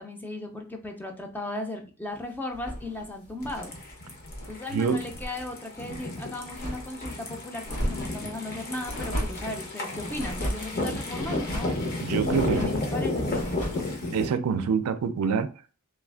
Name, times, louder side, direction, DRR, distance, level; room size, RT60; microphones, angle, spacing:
voice 1, 0.0-3.8 4.5-11.8 12.5-13.9, left 2 dB, 10° left, 0.4 m, -36 dB
sound 1, 2.5-4.6 4.9-5.5 5.8-7.2 7.6-8.3 8.8-9.5 10.1-10.7 11.2-11.8 12.2-12.8 13.2-13.9, equal, 90° left, 1.5 m, -35 dB
sound 2, 3.4-14.3, left 2 dB, 45° left, 0.7 m, -32 dB
voice 2, 12.0-12.7 14.1-15.5, right 6 dB, 80° right, 0.4 m, -25 dB
3.3 x 2.4 x 2.2 m
head